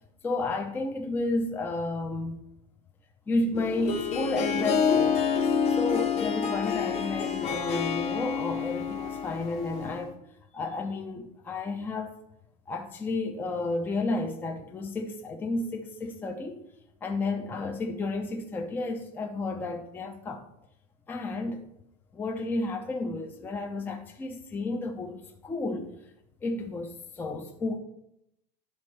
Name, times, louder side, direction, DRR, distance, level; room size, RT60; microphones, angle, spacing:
voice 1, 0.2-2.4 3.3-5.2 5.8-10.1 10.5-12.1 12.7-16.6 17.0-20.4 21.1-21.7 22.1-25.9 26.4-27.8, left 2 dB, 10° left, 3 dB, 0.5 m, -32 dB
Harp, 3.5-10.1, left 6 dB, 30° left, 1.0 m, -28 dB
11.5 x 4.1 x 3.2 m, 0.80 s
supercardioid pair, 160°, 21 cm